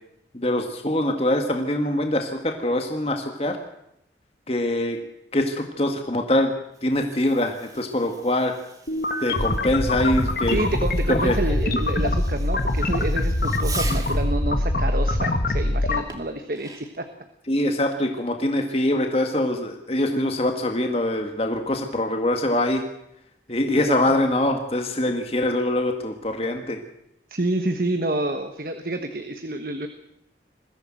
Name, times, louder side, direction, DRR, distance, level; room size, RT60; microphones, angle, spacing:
voice 1, 0.3-3.6 4.5-5.0 5.3-6.5 6.8-8.5 9.2-10.6 11.1-11.4 17.5-22.8 23.5-26.8, left 1 dB, 35° left, 4 dB, 1.9 m, -23 dB
Fireworks, 6.6-14.3 16.1-17.1, right 4 dB, 20° right, 2.0 m, -42 dB
sound 1, 8.9-16.0, left 1 dB, 50° left, 1.7 m, -23 dB
voice 2, 10.5-17.1 23.8-23.9 27.3-29.9, right 1 dB, 50° right, 7 dB, 1.4 m, -28 dB
21.5 x 15.5 x 7.7 m, 0.79 s
head